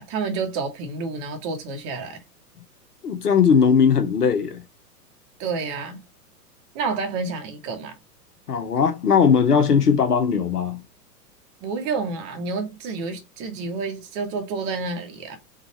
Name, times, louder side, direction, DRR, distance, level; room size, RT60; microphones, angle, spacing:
voice 1, 0.0-2.2 5.4-6.0 6.7-7.9 11.6-15.4, right 4 dB, 20° right, 0.8 m, -29 dB
voice 2, 3.0-4.6 8.5-10.8, left 6 dB, 70° left, 0.8 m, -19 dB
3.8 x 2.3 x 2.8 m
figure-of-eight pair, 105°, 48 cm